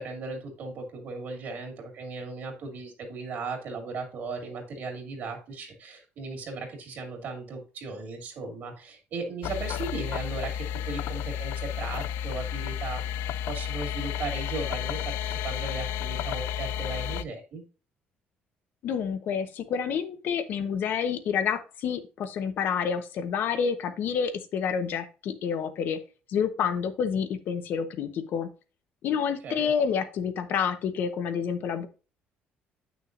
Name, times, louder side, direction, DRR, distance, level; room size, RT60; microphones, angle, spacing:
voice 1, 0.0-13.0 13.5-17.6 29.4-29.7, right 3 dB, 55° right, 5 dB, 2.4 m, -37 dB
sound 1, 9.4-17.2, left 9 dB, 80° left, 0.4 m, -32 dB
voice 2, 18.8-26.0 26.3-28.5 29.0-31.9, left 7 dB, 55° left, 9 dB, 1.0 m, -28 dB
8.8 x 6.2 x 2.6 m, 0.33 s
cardioid pair, 155°, 4 cm